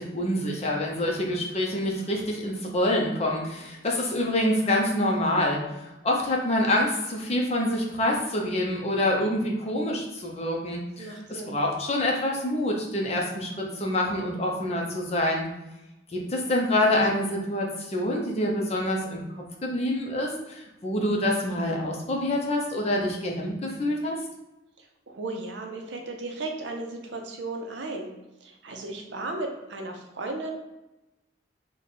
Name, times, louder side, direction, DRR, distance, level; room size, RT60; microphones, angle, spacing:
voice 1, 0.0-15.4 16.1-19.2 19.6-24.2, left 1 dB, 35° left, -1 dB, 0.7 m, -26 dB
voice 2, 11.0-11.6 25.1-28.1 28.4-30.5, right 2 dB, 80° right, 3 dB, 0.6 m, -35 dB
3.3 x 2.2 x 4.0 m, 0.98 s
head